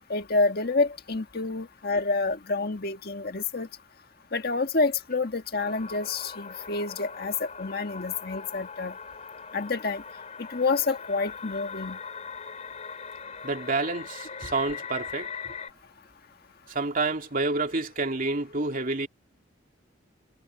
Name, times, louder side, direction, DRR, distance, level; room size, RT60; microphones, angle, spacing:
voice 1, 0.1-3.7 4.3-8.9 9.5-10.0 10.5-12.0, left 3 dB, 55° left, 1.7 m, -28 dB
sound 1, 5.6-15.7, left 6 dB, 40° left, 3.5 m, -41 dB
voice 2, 13.4-15.5 16.7-19.1, right 3 dB, 45° right, 2.7 m, -29 dB
head